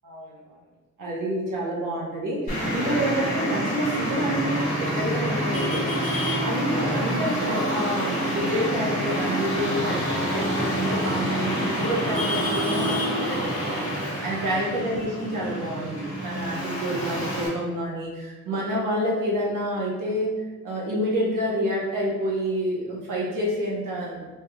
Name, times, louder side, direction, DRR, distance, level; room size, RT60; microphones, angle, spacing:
voice 1, 0.0-0.6 1.0-5.8 6.4-13.5 14.2-20.3 20.6-24.3, equal, 75° right, -5 dB, 1.0 m, -28 dB
Traffic noise roadway noise, 2.5-17.5, equal, 25° left, 1.2 m, -27 dB
3.4 x 3.1 x 2.3 m, 1.2 s
wide cardioid pair, 170°, 32 cm